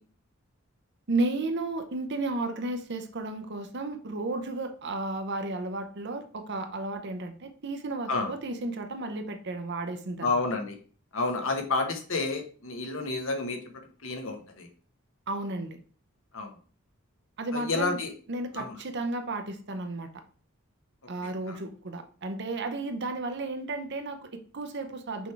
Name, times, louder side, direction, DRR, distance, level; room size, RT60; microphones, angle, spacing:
voice 1, 1.1-10.3 15.3-15.8 17.4-18.0 18.3-20.1 21.1-25.3, right 2 dB, 55° right, 7 dB, 0.7 m, -33 dB
voice 2, 10.2-10.8 11.1-13.6 14.0-14.7 16.3-16.5 17.5-18.1 18.5-18.8 21.2-21.6, left 3 dB, 65° left, 4 dB, 1.2 m, -30 dB
6.1 x 3.5 x 4.6 m, 0.41 s
head